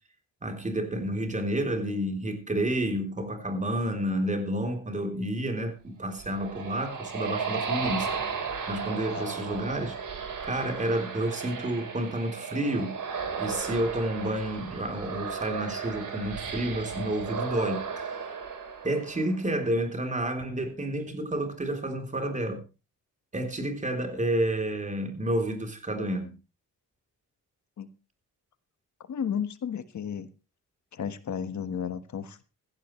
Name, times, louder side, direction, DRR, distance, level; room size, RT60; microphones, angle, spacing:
voice 1, 0.4-8.3 8.7-10.0 10.4-13.0 13.4-17.8 18.8-22.6 23.3-26.3, right 1 dB, 20° right, 3.4 m, -30 dB
sound 1, 6.0-19.6, right 6 dB, 65° right, 4.3 m, -35 dB
voice 2, 29.1-30.3 30.9-32.4, left 8 dB, 60° left, 1.5 m, -33 dB
16.5 x 15.5 x 3.2 m
wide cardioid pair, 140°, 33 cm